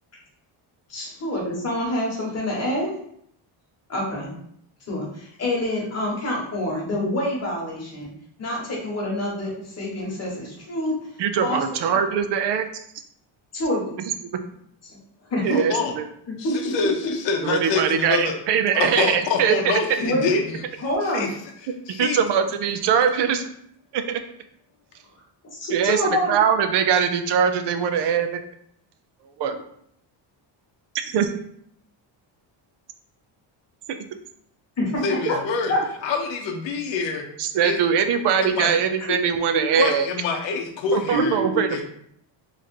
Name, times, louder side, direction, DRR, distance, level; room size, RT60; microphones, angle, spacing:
voice 1, 0.9-2.9 3.9-4.3 4.9-8.1 8.4-10.9 11.4-12.0 13.5-13.8 14.8-15.0 15.3-15.6 16.4-16.7 17.0-17.1 20.0-20.3 20.8-21.3 25.5-26.4 34.8-35.2 35.7-35.8 39.1-39.2 39.5-39.6 41.1-41.7, left 1 dB, 30° left, -3 dB, 1.1 m, -26 dB
voice 2, 11.2-12.6 15.4-16.0 17.4-19.5 22.0-23.4 23.9-24.2 25.7-26.0 26.3-28.4 29.4-29.6 31.0-31.3 33.9-34.0 37.4-40.0 40.9-41.8, right 7 dB, 60° right, 8 dB, 0.5 m, -22 dB
voice 3, 15.5-15.9 16.4-18.3 18.7-21.3 21.6-22.2 35.0-35.7 36.0-37.2 37.6-37.8 38.4-38.7 39.7-41.4 41.7-41.8, left 5 dB, 65° left, 3 dB, 0.7 m, -26 dB
3.1 x 2.5 x 4.2 m, 0.70 s
cardioid pair, 170°, 47 cm